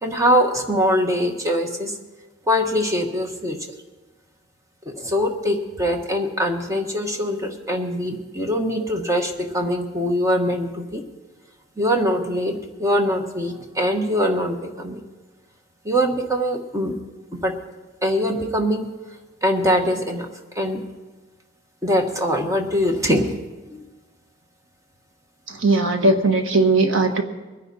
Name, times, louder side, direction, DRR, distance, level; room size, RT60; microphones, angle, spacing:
voice 1, 0.0-2.0 2.5-3.6 4.8-11.0 11.8-15.0 15.8-16.9 17.3-17.6 18.0-18.9 19.4-20.3 20.5-20.8 21.8-23.3 23.7-23.8, equal, 15° right, 3 dB, 1.5 m, -22 dB
voice 2, 25.5-27.2, right 2 dB, 85° right, 5 dB, 1.5 m, -18 dB
23.0 x 10.0 x 4.2 m, 1.2 s
head